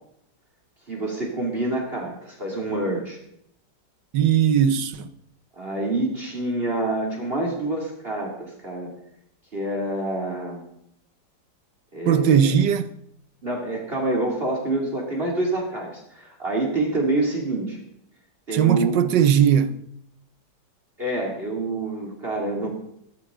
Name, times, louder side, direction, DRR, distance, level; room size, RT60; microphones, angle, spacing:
voice 1, 0.9-3.2 5.6-8.9 9.5-10.6 11.9-12.5 13.4-17.8 18.5-19.0 21.0-22.7, right 2 dB, 30° right, 2.8 m, -27 dB
voice 2, 4.1-5.1 12.1-12.9 18.5-19.8, right 8 dB, 80° right, 1.5 m, -19 dB
17.0 x 14.5 x 3.7 m
omnidirectional pair, 1.9 m